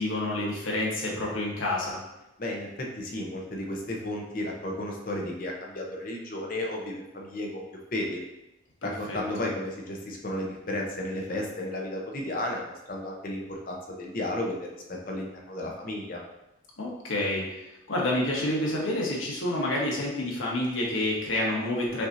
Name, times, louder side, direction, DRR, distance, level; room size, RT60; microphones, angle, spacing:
voice 1, 0.0-2.0 8.8-9.2 16.8-17.6 17.9-22.1, left 1 dB, 90° left, -3 dB, 1.1 m, -28 dB
voice 2, 2.4-7.6 7.9-8.2 8.8-14.6 14.9-16.2, left 1 dB, 45° left, 0 dB, 0.7 m, -33 dB
5.9 x 2.7 x 2.6 m, 0.93 s
head